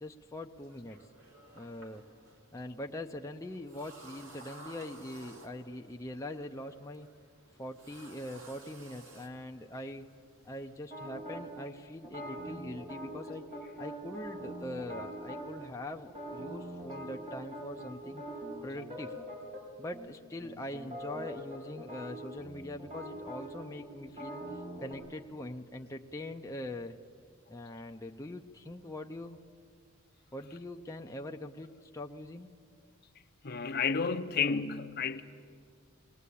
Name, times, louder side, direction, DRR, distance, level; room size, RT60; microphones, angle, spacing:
voice 1, 0.0-1.1 1.5-2.0 2.5-7.1 7.6-10.1 10.4-13.4 13.8-18.2 18.6-19.1 19.8-24.4 24.8-27.0 27.5-29.4 30.3-32.5, left 1 dB, 15° left, 0.6 m, -42 dB
sound 1, 0.6-10.8, right 2 dB, 65° right, 2.6 m, -55 dB
sound 2, 10.9-11.4 12.0-15.5 16.1-19.6 19.9-20.1 20.4-24.9, equal, 35° right, 6.4 m, -43 dB
voice 2, 33.4-35.2, left 5 dB, 45° left, 0.8 m, -31 dB
20.5 x 19.5 x 8.4 m
head